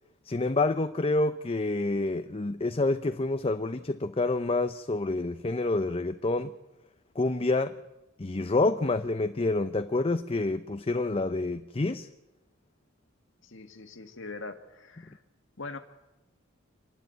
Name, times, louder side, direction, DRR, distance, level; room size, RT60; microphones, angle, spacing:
voice 1, 0.2-6.5 7.2-7.8 8.2-12.1, left 2 dB, 30° left, 0.6 m, -28 dB
voice 2, 13.4-15.2 15.6-15.8, left 3 dB, 65° left, 1.9 m, -42 dB
26.0 x 12.0 x 9.4 m
head